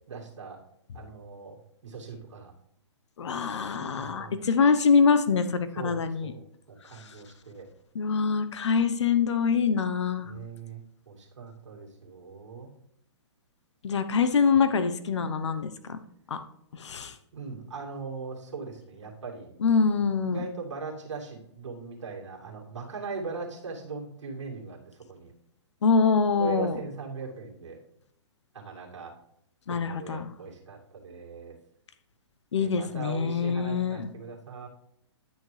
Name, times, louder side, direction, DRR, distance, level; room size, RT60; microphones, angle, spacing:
voice 1, 0.1-0.6 0.9-1.6 1.8-2.5 4.0-4.6 5.7-7.7 10.2-12.7 17.3-19.5 20.3-24.8 25.1-25.3 26.4-27.8 28.5-29.1 29.7-31.5 32.6-34.7, right 4 dB, 80° right, -1 dB, 2.5 m, -40 dB
voice 2, 3.2-6.3 7.9-10.3 13.8-16.0 16.8-17.1 19.6-20.5 25.8-26.8 29.7-30.3 32.5-34.1, left 5 dB, 70° left, 11 dB, 0.9 m, -24 dB
11.0 x 6.5 x 3.3 m, 0.78 s
hypercardioid pair, 140°, 15 cm